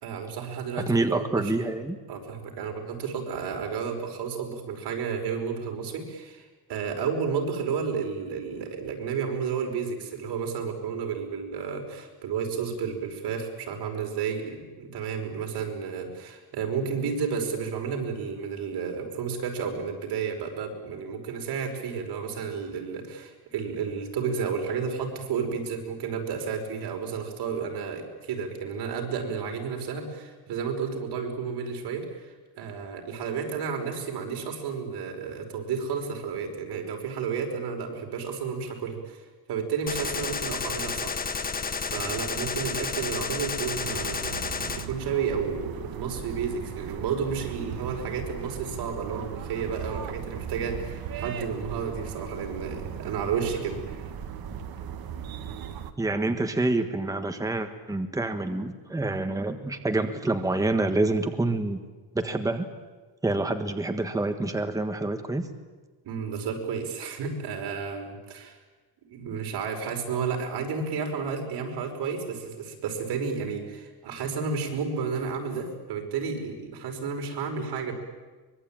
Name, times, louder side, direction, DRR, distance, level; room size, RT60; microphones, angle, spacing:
voice 1, 0.0-1.5 2.1-41.2 41.8-54.1 66.0-68.6 69.0-77.9, right 6 dB, 90° right, 3 dB, 5.6 m, -32 dB
voice 2, 0.9-2.0 56.0-61.8 62.1-62.7 63.2-65.5, right 2 dB, 10° right, 6 dB, 1.5 m, -27 dB
Gunshot gunfire, 39.9-44.9, left 5 dB, 20° left, 1.2 m, -31 dB
sound 1, 43.8-55.9, right 8 dB, 65° right, 1.9 m, -38 dB
24.0 x 22.5 x 9.1 m, 1.3 s
cardioid pair, 160°, 39 cm